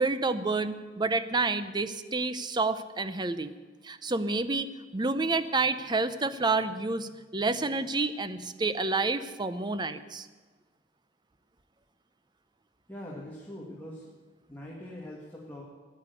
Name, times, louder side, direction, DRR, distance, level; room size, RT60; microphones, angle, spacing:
voice 1, 0.0-3.5 3.8-10.3, right 3 dB, 25° right, 12 dB, 0.7 m, -29 dB
voice 2, 12.9-14.1 14.5-15.6, left 1 dB, 10° left, -4 dB, 2.2 m, -42 dB
13.5 x 10.5 x 8.2 m, 1.4 s
head